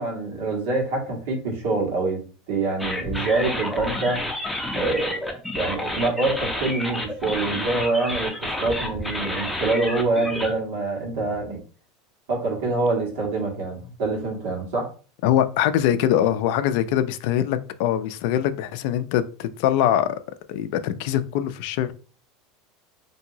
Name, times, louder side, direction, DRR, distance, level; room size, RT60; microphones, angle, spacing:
voice 1, 0.0-2.2 2.5-4.2 4.7-5.2 5.6-11.6 12.3-14.9, right 3 dB, 75° right, -1 dB, 1.3 m, -25 dB
sound 1, 2.8-10.5, left 1 dB, 5° left, 0.5 m, -30 dB
voice 2, 15.2-20.1 20.5-21.9, left 11 dB, 65° left, 11 dB, 0.3 m, -23 dB
2.8 x 2.7 x 2.7 m, 0.38 s
supercardioid pair, 130°, 0 cm